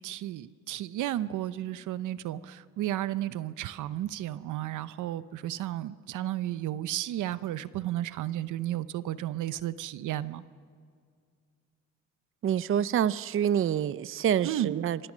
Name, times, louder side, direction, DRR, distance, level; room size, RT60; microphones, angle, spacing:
voice 1, 0.0-10.4 14.4-14.7, right 13 dB, 80° right, 15 dB, 0.8 m, -33 dB
voice 2, 12.4-15.1, right 9 dB, 45° right, 17 dB, 0.5 m, -27 dB
28.0 x 24.0 x 6.2 m, 2.1 s
cardioid pair, 90°, 30 cm